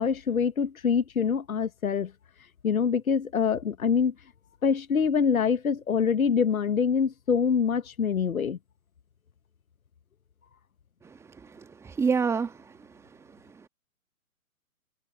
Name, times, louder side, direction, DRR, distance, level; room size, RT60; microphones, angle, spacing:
voice 1, 0.0-2.1 2.6-4.1 4.6-8.6, left 6 dB, 70° left, 1.1 m, -25 dB
voice 2, 11.0-12.7 13.5-13.7, right 5 dB, 5° right, 1.5 m, -29 dB
figure-of-eight pair, 125°, 43 cm